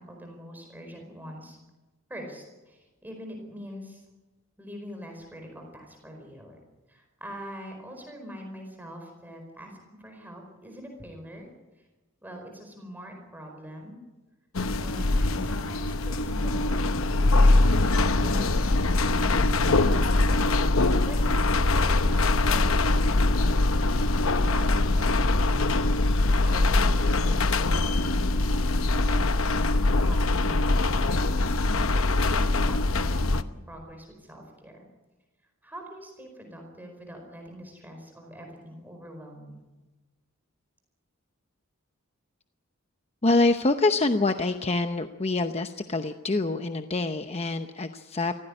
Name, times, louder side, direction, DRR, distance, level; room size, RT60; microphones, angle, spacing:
voice 1, 0.0-1.6 2.1-4.0 4.6-6.6 6.9-11.5 12.2-14.0 14.8-20.7 21.0-24.2 24.5-28.6 29.0-29.7 30.0-34.9 35.6-39.6, equal, 10° right, 2 dB, 4.7 m, -44 dB
sound 1, 14.5-33.4, left 2 dB, 70° left, 0.9 m, -23 dB
voice 2, 43.2-48.4, left 2 dB, 30° left, 7 dB, 0.8 m, -25 dB
24.5 x 16.5 x 9.9 m, 1.2 s
head